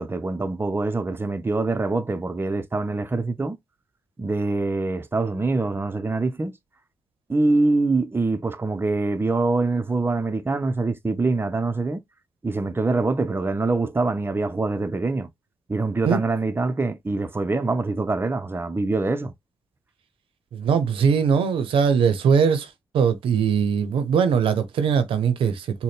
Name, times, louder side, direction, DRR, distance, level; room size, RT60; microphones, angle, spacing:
voice 1, 0.0-3.6 4.2-6.6 7.3-12.0 12.4-15.3 15.7-19.3, right 3 dB, 25° right, 0.7 m, -24 dB
voice 2, 20.5-25.8, right 6 dB, 85° right, 0.7 m, -21 dB
4.1 x 2.2 x 3.4 m
supercardioid pair, 50°, 9 cm